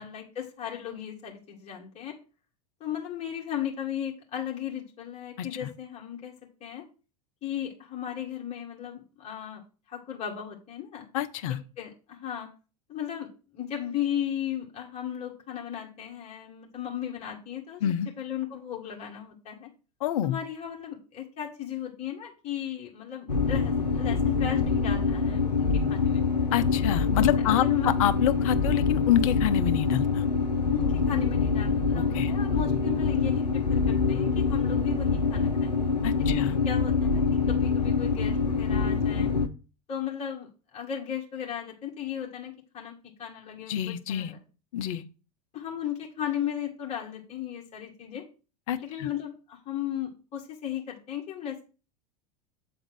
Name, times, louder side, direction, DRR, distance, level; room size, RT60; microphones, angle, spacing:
voice 1, 0.0-2.2 2.8-6.3 6.6-6.9 7.4-9.6 9.9-11.1 11.8-12.5 12.9-13.3 13.5-17.8 18.2-19.7 20.2-26.2 27.2-28.1 30.7-35.7 36.2-39.3 39.9-42.9 43.2-44.4 45.5-48.2 48.8-51.6, left 10 dB, 30° left, 1.9 m, -35 dB
voice 2, 11.1-11.6 17.8-18.1 20.0-20.4 26.5-30.2 31.9-32.3 36.0-36.6 43.7-44.3 44.7-45.0 48.7-49.1, left 11 dB, 55° left, 0.8 m, -27 dB
sound 1, 23.3-39.5, left 5 dB, 90° left, 0.7 m, -25 dB
7.8 x 3.9 x 6.2 m
figure-of-eight pair, 85°, 20 cm